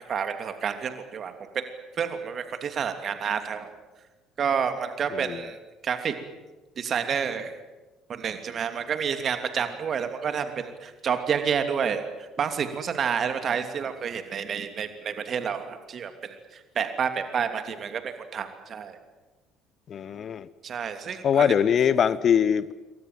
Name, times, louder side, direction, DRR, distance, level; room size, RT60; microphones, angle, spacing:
voice 1, 0.1-1.6 2.0-3.7 4.4-5.6 5.8-6.1 6.8-7.5 8.1-16.3 16.7-19.0 20.6-21.5, right 7 dB, 40° right, 8 dB, 2.9 m, -29 dB
voice 2, 5.1-5.4 19.9-20.5 21.2-22.7, left 8 dB, 40° left, 19 dB, 0.8 m, -22 dB
28.0 x 23.0 x 7.6 m, 1.2 s
figure-of-eight pair, 55°, 0 cm